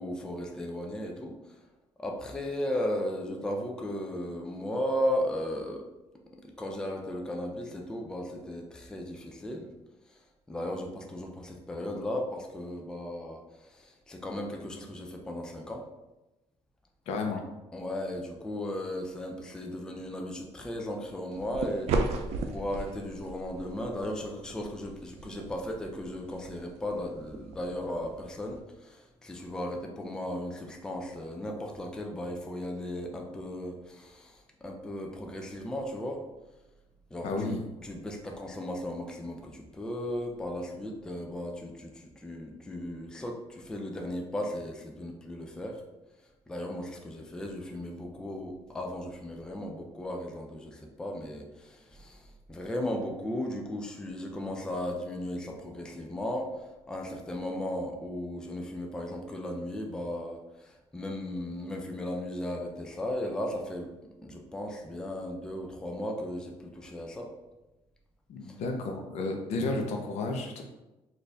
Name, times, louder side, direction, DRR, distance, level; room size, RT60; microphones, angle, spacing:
voice 1, 0.0-1.6 2.0-5.9 6.3-9.7 10.1-15.9 17.7-36.3 37.1-37.6 37.8-45.8 46.5-63.9 64.2-67.3 68.4-68.6, left 1 dB, 5° left, 2 dB, 0.3 m, -36 dB
voice 2, 17.1-17.4 37.2-37.6 68.3-70.6, left 3 dB, 80° left, 2 dB, 0.7 m, -32 dB
sound 1, 21.3-28.6, right 3 dB, 70° right, 0.4 m, -36 dB
4.2 x 2.5 x 3.3 m, 1.0 s
cardioid pair, 170°, 11 cm